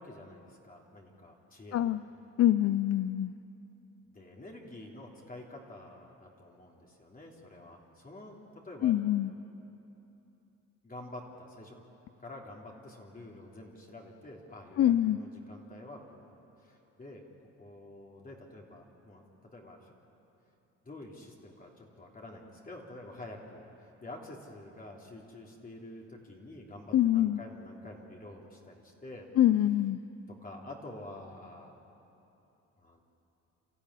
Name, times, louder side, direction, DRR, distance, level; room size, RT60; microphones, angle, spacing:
voice 1, 0.0-2.0 4.1-8.9 10.8-11.8 12.2-16.3 16.6-17.2 17.6-19.2 19.5-19.9 20.8-29.3 30.4-31.7 32.8-33.0, left 1 dB, 30° left, -1 dB, 3.3 m, -48 dB
voice 2, 2.4-3.3 8.8-9.3 14.8-15.2 26.9-27.4 29.4-30.0, left 12 dB, 55° left, 14 dB, 0.5 m, -25 dB
29.0 x 13.5 x 9.8 m, 2.9 s
cardioid pair, 90°, 30 cm